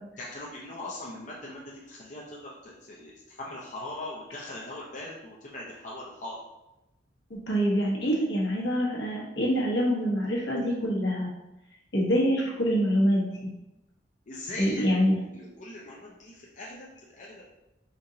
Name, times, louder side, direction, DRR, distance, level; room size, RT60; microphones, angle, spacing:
voice 1, 0.2-3.1 3.4-6.4 14.3-14.9 15.2-17.5, left 1 dB, 40° left, -5 dB, 0.6 m, -40 dB
voice 2, 7.3-11.3 11.9-13.3 14.6-15.2, equal, 70° left, -3 dB, 1.2 m, -25 dB
4.3 x 3.8 x 2.8 m, 0.92 s
head